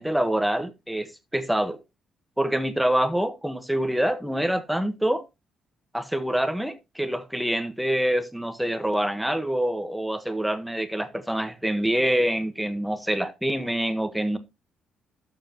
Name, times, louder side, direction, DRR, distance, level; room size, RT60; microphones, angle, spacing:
voice 1, 0.0-1.8 2.4-5.2 5.9-14.4, right 1 dB, 5° right, 1.5 m, -26 dB
12.5 x 7.3 x 3.1 m
cardioid pair, 90°, 0 cm